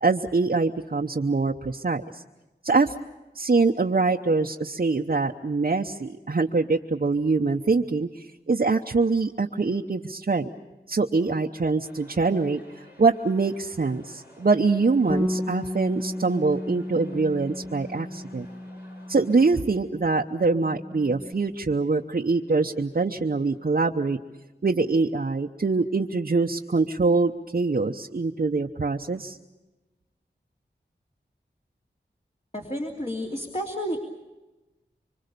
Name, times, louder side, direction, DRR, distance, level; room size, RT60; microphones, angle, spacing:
voice 1, 0.0-2.2 2.6-2.9 3.3-10.5 10.9-18.5 19.1-24.2 24.6-29.4, right 3 dB, 50° right, 1 dB, 0.9 m, -24 dB
sound 1, 11.8-19.6, left 1 dB, 65° left, 7.8 m, -53 dB
Bass guitar, 15.1-19.8 20.1-21.3, left 1 dB, 10° left, 1.1 m, -34 dB
voice 2, 32.5-34.0, equal, 35° left, 0 dB, 3.0 m, -31 dB
25.5 x 25.0 x 6.8 m, 1.1 s
wide cardioid pair, 70°, 18 cm